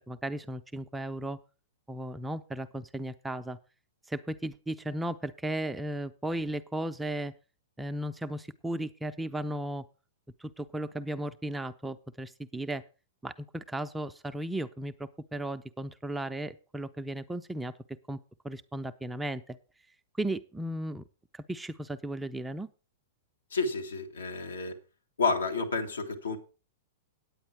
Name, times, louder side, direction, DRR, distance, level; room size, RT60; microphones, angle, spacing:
voice 1, 0.1-1.4 1.9-3.6 4.1-7.3 7.8-9.8 10.4-12.8 13.2-17.7 18.1-18.2 18.4-19.6 20.2-21.0 21.3-22.7, right 1 dB, 5° right, 0.5 m, -35 dB
voice 2, 23.5-24.8 25.2-26.4, left 4 dB, 80° left, 1.8 m, -30 dB
9.2 x 8.8 x 4.7 m
hypercardioid pair, 110°, 0 cm